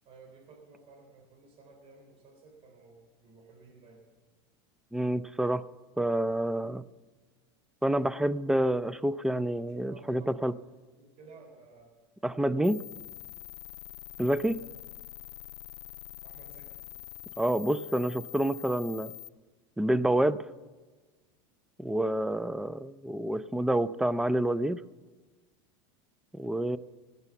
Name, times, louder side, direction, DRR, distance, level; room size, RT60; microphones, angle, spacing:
voice 1, 0.1-4.0 9.5-10.6 11.0-11.9 16.2-16.9, right 3 dB, 45° right, -1 dB, 3.7 m, -54 dB
voice 2, 4.9-5.6 6.0-6.8 7.8-10.5 12.2-12.8 14.2-14.6 17.4-19.1 19.8-20.4 21.8-24.8 26.3-26.8, right 1 dB, 5° right, 18 dB, 0.4 m, -28 dB
sound 1, 12.6-19.3, left 14 dB, 90° left, 0.5 m, -45 dB
18.0 x 6.9 x 8.0 m, 1.3 s
supercardioid pair, 120°, 14 cm